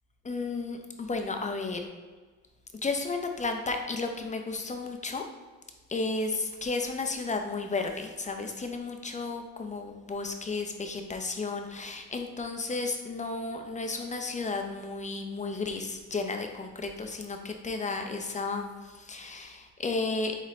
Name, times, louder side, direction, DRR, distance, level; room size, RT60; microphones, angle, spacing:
voice 1, 0.2-1.8 2.8-5.2 5.9-20.4, left 3 dB, 25° left, 4 dB, 0.7 m, -33 dB
4.1 x 3.9 x 3.2 m, 1.4 s
supercardioid pair, 70°, 31 cm